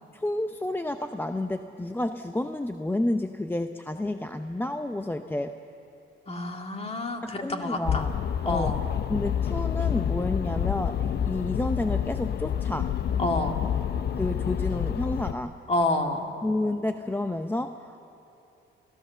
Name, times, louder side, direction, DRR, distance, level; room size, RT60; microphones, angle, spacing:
voice 1, 0.1-5.5 7.2-8.1 8.4-8.8 9.1-12.9 14.2-15.6 16.4-18.0, left 1 dB, 10° left, 7 dB, 0.7 m, -30 dB
voice 2, 6.3-8.1 8.4-8.8 13.2-13.6 15.7-16.3, left 2 dB, 30° left, 3 dB, 2.2 m, -28 dB
sound 1, 7.8-15.3, left 9 dB, 55° left, 0.6 m, -28 dB
28.5 x 14.0 x 6.9 m, 2.8 s
cardioid pair, 90°, 20 cm